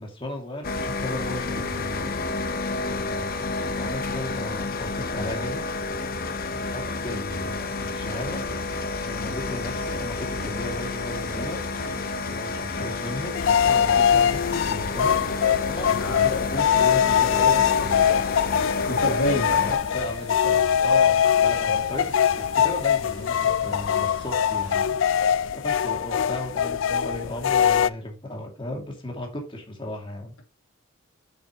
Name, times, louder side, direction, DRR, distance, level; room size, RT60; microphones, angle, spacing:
voice 1, 0.0-2.1 2.9-5.7 6.6-8.4 9.0-11.6 12.3-15.2 15.7-18.3 19.4-25.0 25.4-30.3, left 1 dB, 25° left, 1 dB, 2.4 m, -36 dB
sound 1, 0.6-19.7, left 3 dB, 45° left, 0.9 m, -30 dB
sound 2, 7.3-24.8, right 2 dB, 55° right, 1.2 m, -45 dB
sound 3, 13.4-27.9, left 8 dB, 60° left, 0.4 m, -22 dB
voice 2, 15.9-16.3 18.8-19.7, left 1 dB, 75° left, 3 dB, 2.1 m, -27 dB
8.6 x 6.7 x 3.0 m, 0.28 s
head